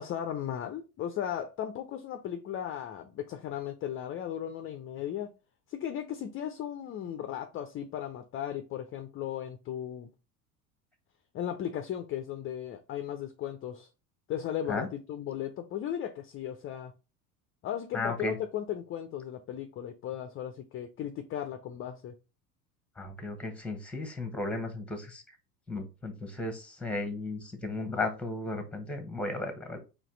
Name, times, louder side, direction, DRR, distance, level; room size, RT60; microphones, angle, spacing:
voice 1, 0.0-5.3 5.7-10.1 11.3-13.9 14.3-16.9 17.6-22.1, left 10 dB, 30° left, 0.5 m, -36 dB
voice 2, 17.9-18.4 23.0-25.2 25.7-29.8, left 2 dB, 5° left, 1.0 m, -35 dB
4.1 x 2.9 x 3.7 m
hypercardioid pair, 80°, 47 cm